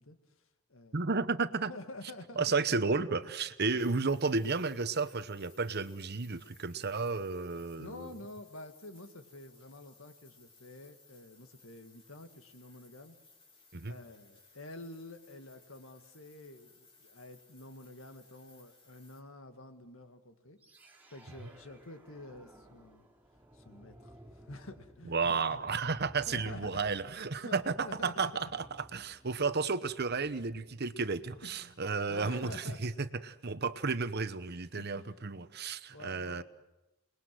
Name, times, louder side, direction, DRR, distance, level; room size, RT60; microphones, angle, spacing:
voice 1, 0.0-1.0 1.7-2.4 7.8-13.2 13.8-20.6 21.1-23.1 23.5-25.7 26.3-26.8 27.4-28.3 31.4-31.8 32.1-33.0 34.8-35.2 35.9-36.4, left 2 dB, 70° left, 8 dB, 2.0 m, -49 dB
voice 2, 0.9-1.7 2.4-8.1 13.7-13.9 25.1-36.4, right 4 dB, 50° right, 12 dB, 1.0 m, -33 dB
sound 1, 3.8-19.2, left 3 dB, 25° left, 4.2 m, -62 dB
sound 2, 20.6-31.7, equal, 10° right, 3.8 m, -58 dB
28.5 x 20.5 x 7.8 m, 0.97 s
head